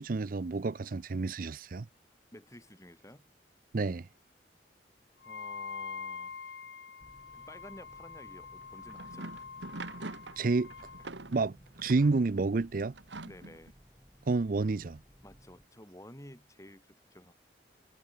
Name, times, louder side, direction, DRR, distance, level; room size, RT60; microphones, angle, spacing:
voice 1, 0.0-1.9 3.7-4.1 10.4-10.7 11.3-11.6 11.8-12.9 14.3-15.0, right 3 dB, 50° right, 0.5 m, -29 dB
voice 2, 2.3-3.3 5.2-6.3 7.3-9.5 13.2-13.7 15.2-17.3, left 1 dB, 15° left, 5.5 m, -52 dB
Wind instrument woodwind instrument, 5.2-11.1, left 5 dB, 85° left, 1.3 m, -45 dB
sound 1, 7.0-15.7, equal, 10° right, 2.0 m, -59 dB
sound 2, 8.6-12.2 13.0-13.7, right 2 dB, 85° right, 1.6 m, -44 dB
head